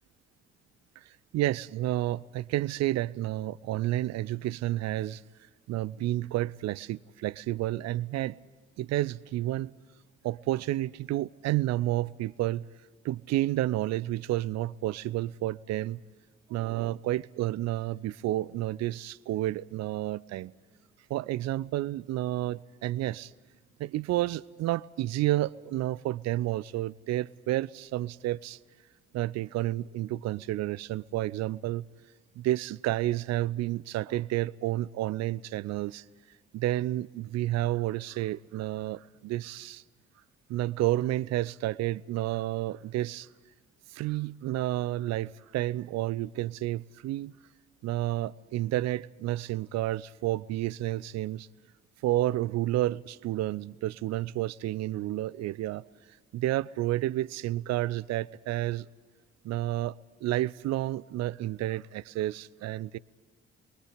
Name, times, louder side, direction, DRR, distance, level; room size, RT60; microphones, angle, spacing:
voice 1, 1.3-5.2 5.7-8.4 8.8-9.8 10.2-12.7 13.0-16.0 16.5-20.5 21.1-23.3 23.8-28.6 29.1-31.8 32.4-36.0 36.5-39.8 40.5-43.3 43.9-47.3 47.8-51.5 52.0-55.8 56.3-58.9 59.4-59.9 60.2-63.0, right 15 dB, 55° right, 0.6 m, -30 dB
28.5 x 23.0 x 5.1 m
figure-of-eight pair, 40°, 32 cm